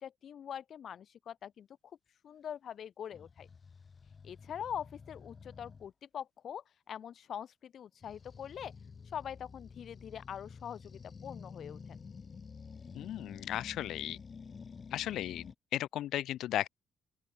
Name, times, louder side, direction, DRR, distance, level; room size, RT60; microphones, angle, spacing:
voice 1, 0.0-1.7 2.2-3.5 4.2-8.7 9.1-11.8, left 9 dB, 60° left, 0.7 m, -43 dB
sound 1, 3.1-5.9 8.0-15.5, left 5 dB, 40° left, 3.8 m, -50 dB
voice 2, 12.9-14.2 14.9-16.7, left 13 dB, 80° left, 1.2 m, -35 dB
open air
cardioid pair, 90°, 0 cm